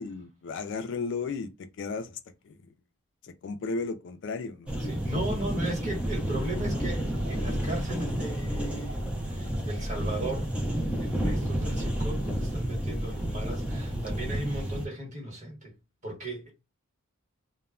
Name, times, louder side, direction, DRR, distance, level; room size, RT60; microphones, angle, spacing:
voice 1, 0.0-2.2 2.4-2.7 3.2-4.8, left 4 dB, 60° left, 0.4 m, -35 dB
sound 1, 4.7-14.8, right 1 dB, 5° right, 0.4 m, -31 dB
voice 2, 4.8-10.5 11.0-15.7 16.0-16.5, right 1 dB, 35° right, 1.2 m, -36 dB
sound 2, 6.0-12.3, left 1 dB, 55° right, 0.9 m, -43 dB
2.1 x 2.1 x 3.5 m
head